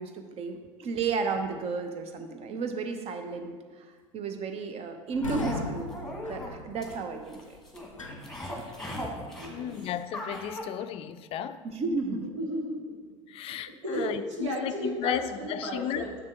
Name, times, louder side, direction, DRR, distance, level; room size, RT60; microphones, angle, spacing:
voice 1, 0.0-5.9 6.2-7.6 11.6-12.3, right 4 dB, 40° right, 6 dB, 0.9 m, -33 dB
sound 1, 5.1-9.0, left 3 dB, 90° left, 0.5 m, -39 dB
sound 2, 5.2-10.6, equal, 5° left, 1.5 m, -39 dB
voice 2, 8.9-9.7 12.4-13.0 13.8-16.1, right 1 dB, 70° right, -1 dB, 1.4 m, -34 dB
voice 3, 9.5-11.6 13.3-16.1, left 10 dB, 35° left, 13 dB, 0.4 m, -34 dB
7.1 x 6.6 x 3.7 m, 1.4 s
figure-of-eight pair, 70°, 16 cm